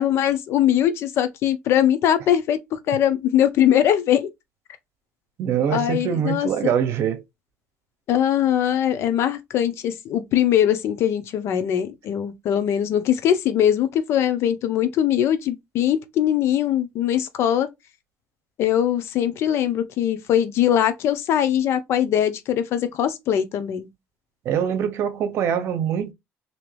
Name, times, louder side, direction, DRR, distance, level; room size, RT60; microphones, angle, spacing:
voice 1, 0.0-4.3 5.7-6.7 8.1-17.7 18.6-23.9, left 10 dB, 65° left, 0.7 m, -21 dB
voice 2, 5.4-7.2 24.4-26.1, right 8 dB, 65° right, 0.8 m, -23 dB
3.4 x 2.8 x 3.2 m
cardioid pair, 120°, 5 cm